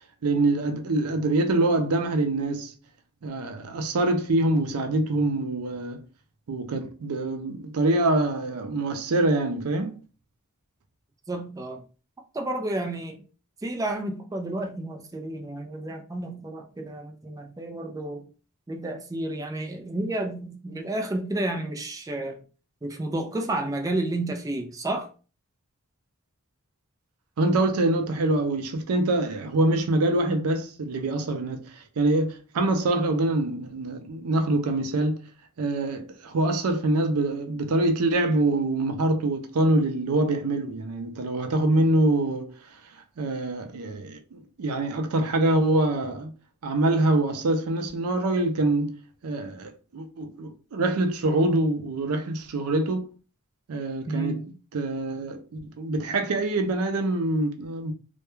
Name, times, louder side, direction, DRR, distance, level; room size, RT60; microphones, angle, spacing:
voice 1, 0.2-2.7 3.2-6.0 6.5-10.0 27.4-35.3 35.6-42.5 43.2-46.3 46.6-53.1 53.7-57.9, right 2 dB, 90° right, 0.5 m, -25 dB
voice 2, 11.3-11.8 12.3-13.2 13.6-18.2 18.7-22.4 22.8-25.1 54.1-54.5, right 1 dB, 15° right, 0.3 m, -31 dB
2.2 x 2.1 x 3.0 m
head